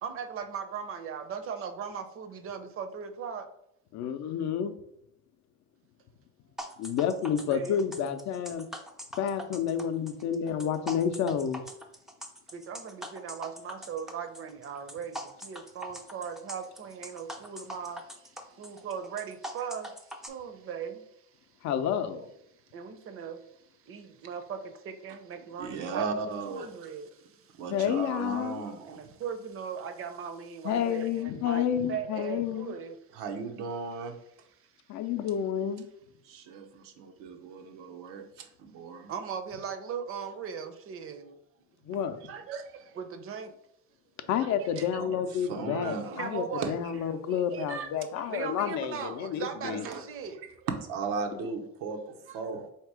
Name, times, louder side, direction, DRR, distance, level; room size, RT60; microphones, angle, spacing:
voice 1, 0.0-3.5 7.5-7.8 12.5-21.3 22.7-26.1 26.5-27.6 28.9-33.0 34.6-34.7 39.1-41.4 42.3-43.5 44.2-44.9 45.7-46.7 47.3-50.4 52.3-52.4, right 7 dB, 45° right, 0.6 m, -39 dB
voice 2, 3.9-4.7 6.8-8.7 9.2-11.6 21.6-22.3 27.7-28.6 30.6-32.7 34.9-35.9 41.8-42.2 44.3-49.8, left 8 dB, 60° left, 0.5 m, -30 dB
sound 1, 6.6-20.3, equal, ahead, 0.4 m, -42 dB
voice 3, 25.6-26.9 27.6-29.1 33.1-34.1 36.2-39.1 42.5-42.6 44.8-46.3 46.6-46.7 49.6-50.0 50.4-52.7, right 4 dB, 90° right, 0.8 m, -36 dB
3.6 x 2.9 x 4.7 m
cardioid pair, 130°, 32 cm